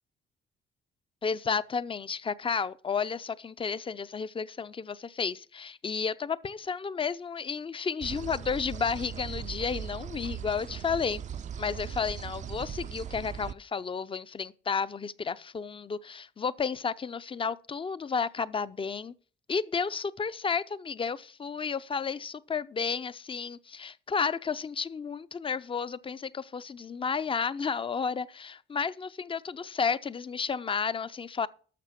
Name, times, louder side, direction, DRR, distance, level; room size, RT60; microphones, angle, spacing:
voice 1, 1.2-11.2 11.6-19.1 19.5-31.5, left 5 dB, 25° left, 0.6 m, -32 dB
sound 1, 8.0-13.5, right 8 dB, 40° right, 0.4 m, -39 dB
12.0 x 6.7 x 5.9 m
cardioid pair, 90°, 20 cm